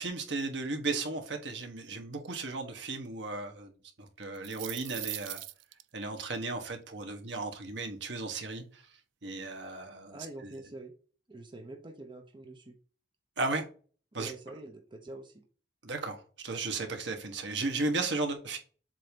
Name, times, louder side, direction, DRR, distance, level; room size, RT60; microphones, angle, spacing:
voice 1, 0.0-3.7 4.0-5.4 5.9-8.8 9.2-10.6 13.4-13.6 14.1-14.3 15.8-18.6, right 3 dB, 65° right, 1.2 m, -35 dB
sound 1, 4.2-5.8, right 16 dB, 85° right, 0.4 m, -40 dB
voice 2, 10.1-10.9 11.3-12.8 14.1-15.4, right 2 dB, 25° right, 0.7 m, -46 dB
7.6 x 2.8 x 5.1 m
head